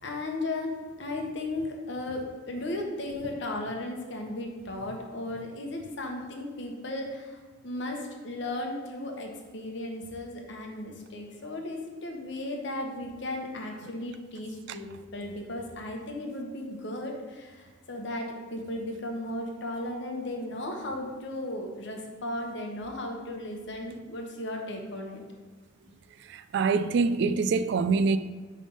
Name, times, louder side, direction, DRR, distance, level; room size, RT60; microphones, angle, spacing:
voice 1, 0.0-25.2, left 1 dB, 65° left, 1.0 m, -35 dB
voice 2, 26.3-28.2, right 4 dB, 60° right, 0.3 m, -25 dB
5.2 x 3.3 x 5.3 m
head